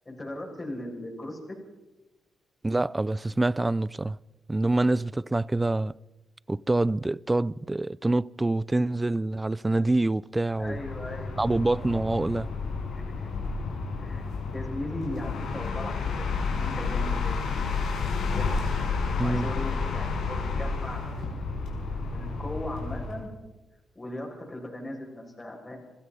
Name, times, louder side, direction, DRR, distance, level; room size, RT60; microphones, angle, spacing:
voice 1, 0.1-1.6 10.6-11.6 12.9-13.3 14.0-14.3 14.5-18.5 19.2-21.6 22.1-23.3 23.9-25.8, left 1 dB, 25° left, 7.6 m, -38 dB
voice 2, 2.6-4.2 4.5-5.9 6.5-10.8 11.4-12.5 19.2-19.5, right 2 dB, 20° right, 0.6 m, -26 dB
sound 1, 10.5-23.2, left 4 dB, 75° left, 5.8 m, -31 dB
29.0 x 16.0 x 5.7 m
supercardioid pair, 55°, 0 cm